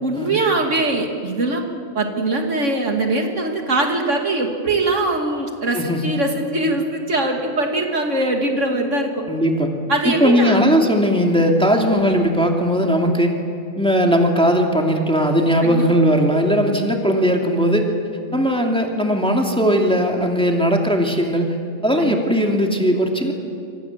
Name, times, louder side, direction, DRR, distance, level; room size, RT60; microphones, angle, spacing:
voice 1, 0.0-1.6 1.9-9.2 9.9-10.6 15.6-15.8 22.0-22.2, right 2 dB, 70° right, 2 dB, 2.8 m, -22 dB
voice 2, 5.7-6.0 9.3-9.7 10.0-13.3 13.8-17.8 18.3-21.6 21.8-23.3, equal, 5° left, 1 dB, 2.6 m, -18 dB
27.0 x 24.5 x 7.5 m, 2.6 s
omnidirectional pair, 1.3 m